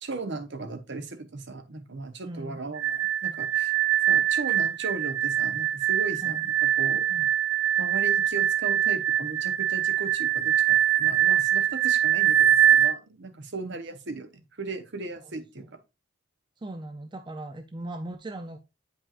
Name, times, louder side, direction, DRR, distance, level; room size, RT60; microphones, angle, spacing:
voice 1, 0.0-3.7 4.1-7.1 7.8-15.6, right 3 dB, 55° right, 0.8 m, -37 dB
voice 2, 2.2-2.6 6.2-6.4 7.1-7.3 15.2-15.7 16.6-18.6, right 1 dB, 20° right, 0.4 m, -39 dB
sound 1, 2.8-12.9, right 11 dB, 85° right, 0.4 m, -23 dB
8.6 x 5.2 x 2.4 m
head